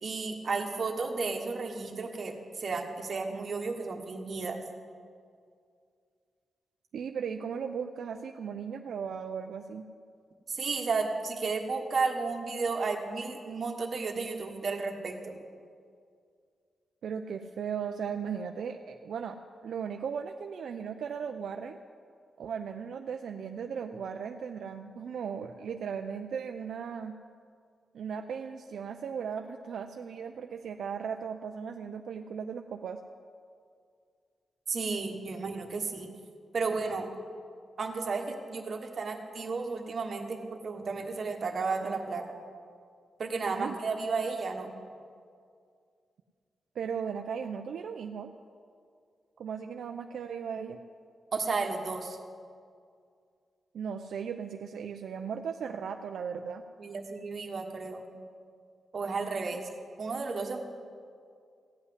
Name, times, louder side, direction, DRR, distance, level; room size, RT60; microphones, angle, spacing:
voice 1, 0.0-4.6 10.5-15.4 34.7-36.1 36.5-37.1 37.8-42.2 43.2-44.8 51.3-52.2 56.8-58.1 58.9-59.7 60.0-60.6, right 4 dB, 50° right, 3 dB, 1.4 m, -33 dB
voice 2, 6.9-9.9 17.0-19.4 19.6-21.8 22.4-27.2 27.9-33.0 43.5-43.7 46.7-48.3 49.4-50.8 53.7-56.6, right 7 dB, 80° right, 5 dB, 0.5 m, -37 dB
15.5 x 5.7 x 9.6 m, 2.2 s
wide cardioid pair, 115°, 0 cm